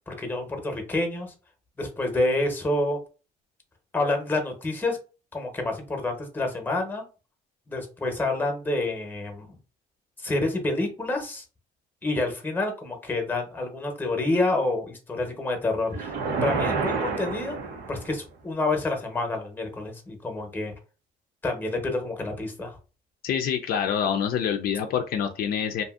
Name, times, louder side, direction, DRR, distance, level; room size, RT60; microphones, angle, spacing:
voice 1, 0.1-1.3 1.8-3.0 3.9-5.0 5.3-7.0 7.7-9.6 10.2-11.4 12.0-16.1 16.4-17.6 17.9-20.7 21.4-22.7, left 2 dB, 10° left, 4 dB, 0.8 m, -28 dB
sound 1, 15.9-18.2, right 4 dB, 85° right, 0.8 m, -29 dB
voice 2, 23.2-25.8, left 8 dB, 60° left, 6 dB, 0.4 m, -26 dB
2.6 x 2.5 x 2.4 m, 0.34 s
cardioid pair, 110°, 17 cm